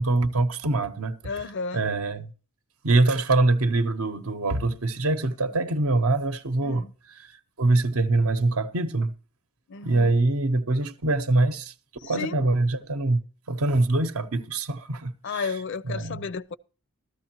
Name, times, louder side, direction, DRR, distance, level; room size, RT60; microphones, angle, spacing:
voice 1, 0.0-1.4 1.7-2.3 2.8-9.1 9.8-11.7 12.0-13.2 13.5-15.6 15.8-16.3, right 2 dB, 75° right, 0.8 m, -24 dB
voice 2, 1.2-1.8 6.6-6.9 9.7-10.2 12.0-12.5 15.2-16.5, left 5 dB, 55° left, 0.5 m, -33 dB
14.5 x 13.0 x 2.9 m
head